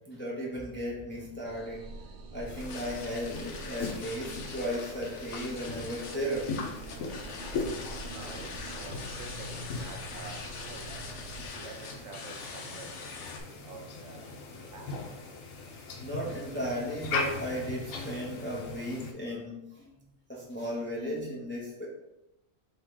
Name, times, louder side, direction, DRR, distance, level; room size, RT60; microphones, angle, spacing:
voice 1, 0.0-1.9 2.3-6.5 7.9-8.0 16.0-19.9 20.3-21.9, equal, 10° left, -4 dB, 0.7 m, -35 dB
sound 1, 1.4-11.5, right 2 dB, 90° right, 1.1 m, -45 dB
sound 2, 2.5-19.1, left 3 dB, 85° left, 1.1 m, -40 dB
sound 3, 2.6-13.4, left 4 dB, 70° left, 1.0 m, -44 dB
voice 2, 8.1-11.0 11.4-14.9, right 4 dB, 65° right, 2 dB, 0.9 m, -48 dB
3.6 x 3.1 x 4.5 m, 0.91 s
omnidirectional pair, 1.4 m